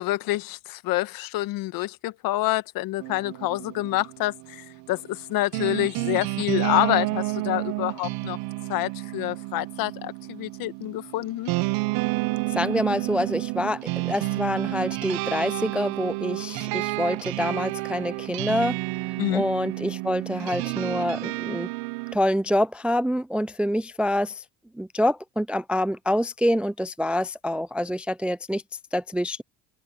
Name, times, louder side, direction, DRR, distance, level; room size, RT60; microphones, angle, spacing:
voice 1, 0.0-8.4 8.7-11.5 19.2-19.4, left 18 dB, 65° left, 1.5 m, -27 dB
sound 1, 3.0-22.2, right 23 dB, 70° right, 0.8 m, -30 dB
voice 2, 12.5-18.8 19.3-21.7 22.1-24.4 24.7-28.6 28.9-29.4, left 1 dB, 5° right, 0.3 m, -26 dB
supercardioid pair, 90°, 36 cm